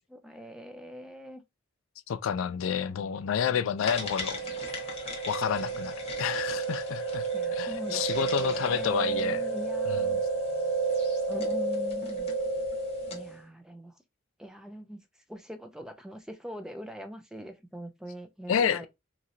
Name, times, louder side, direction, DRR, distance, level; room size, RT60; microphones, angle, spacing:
voice 1, 0.0-1.4 2.9-3.8 4.1-4.6 7.3-10.2 11.3-12.3 13.1-13.9 14.4-15.0 15.3-18.9, equal, 5° right, 0.4 m, -43 dB
voice 2, 2.1-4.4 5.3-7.2 7.5-9.5 9.9-10.2 18.5-18.9, left 8 dB, 85° left, 0.3 m, -29 dB
sound 1, 3.8-13.3, right 3 dB, 30° left, 1.0 m, -31 dB
3.0 x 2.8 x 2.5 m
head